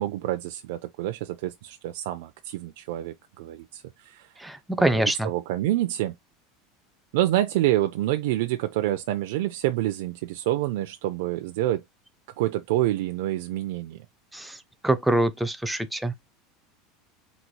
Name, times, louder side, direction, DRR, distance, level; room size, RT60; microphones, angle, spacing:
voice 1, 0.0-4.3 4.8-6.1 7.1-11.8 12.4-14.0, right 14 dB, 70° right, 0.4 m, -27 dB
voice 2, 4.4-5.3 14.3-14.6 14.8-16.2, right 1 dB, 5° right, 0.4 m, -24 dB
4.0 x 2.3 x 4.5 m
supercardioid pair, 165°, 0 cm